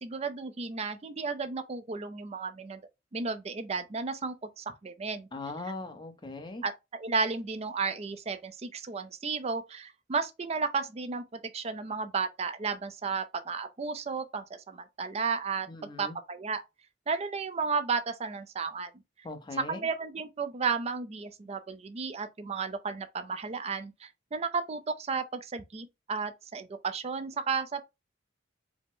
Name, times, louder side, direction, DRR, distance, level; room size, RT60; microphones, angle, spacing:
voice 1, 0.0-2.8 3.1-5.3 6.6-15.7 16.0-16.6 17.1-18.9 19.6-27.8, right 5 dB, 35° right, 0.4 m, -33 dB
voice 2, 5.3-6.6 15.7-16.2 19.2-19.9, left 3 dB, 25° left, 0.7 m, -40 dB
4.9 x 2.1 x 3.6 m
head